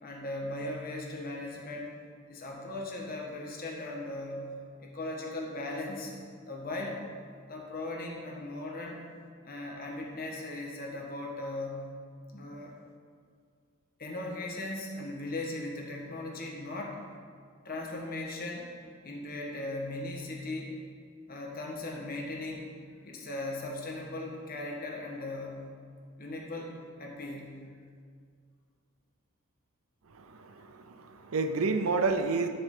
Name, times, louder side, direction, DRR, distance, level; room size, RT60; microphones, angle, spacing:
voice 1, 0.0-1.9 2.3-6.1 6.5-7.0 7.5-9.0 9.4-11.9 12.3-12.8 14.0-17.0 17.6-18.8 19.0-20.8 21.3-22.7 23.0-25.7 26.2-27.6, left 2 dB, 45° left, -1 dB, 1.4 m, -38 dB
voice 2, 30.1-32.5, right 4 dB, 85° right, 8 dB, 0.6 m, -30 dB
9.9 x 7.0 x 3.9 m, 2.1 s
head